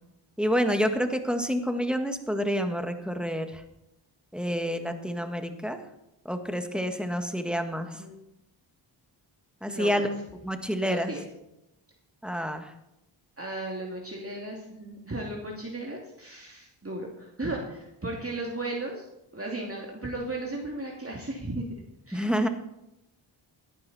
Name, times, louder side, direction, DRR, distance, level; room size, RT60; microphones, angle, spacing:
voice 1, 0.4-3.6 4.3-5.8 6.2-8.0 9.6-10.1 10.4-11.1 12.2-12.7 22.1-22.5, equal, ahead, 7 dB, 1.7 m, -28 dB
voice 2, 9.7-10.1 10.8-11.2 13.4-21.7 22.1-22.5, right 2 dB, 30° right, -1 dB, 2.6 m, -35 dB
15.0 x 11.0 x 4.3 m, 0.88 s
cardioid pair, 50°, 49 cm